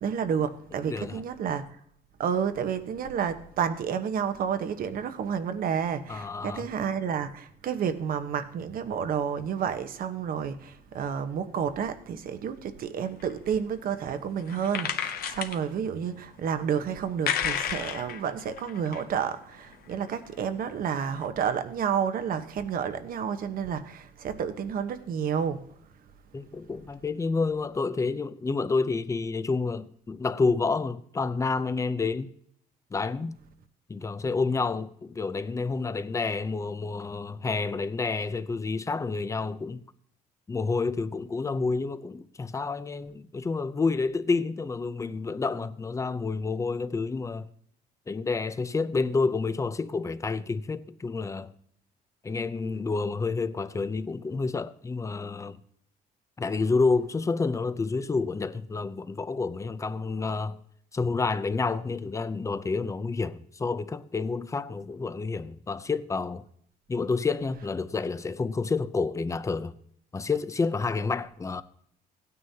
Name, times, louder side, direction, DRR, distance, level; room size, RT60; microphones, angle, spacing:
voice 1, 0.0-1.6 2.2-25.6, right 7 dB, 55° right, 1.0 m, -30 dB
voice 2, 0.9-1.2 6.1-6.7 26.3-32.3 32.9-33.4 33.9-39.8 40.5-47.5 48.1-51.5 52.2-55.6 56.4-60.6 60.9-66.4 66.9-69.7 70.1-71.6, left 4 dB, 20° left, 0.6 m, -29 dB
sound 1, 13.2-13.5 14.4-15.6 16.5-16.7 17.3-19.0 19.4-20.4 20.9-21.0 21.2-21.3, left 8 dB, 65° left, 1.0 m, -32 dB
16.5 x 9.4 x 2.8 m
cardioid pair, 110°, 17 cm